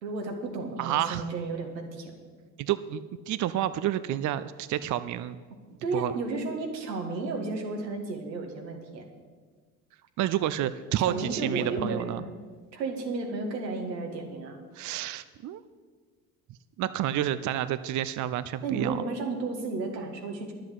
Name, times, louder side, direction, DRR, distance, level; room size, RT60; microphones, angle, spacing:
voice 1, 0.0-2.1 5.8-9.1 11.0-12.3 12.7-14.6 18.6-20.5, right 3 dB, 85° right, 3 dB, 1.8 m, -33 dB
voice 2, 0.8-1.2 2.6-3.0 3.3-5.4 5.9-6.1 10.2-12.2 14.7-15.6 16.8-19.0, right 12 dB, 40° right, 13 dB, 0.6 m, -29 dB
11.0 x 7.6 x 7.8 m, 1.5 s
hypercardioid pair, 65°, 49 cm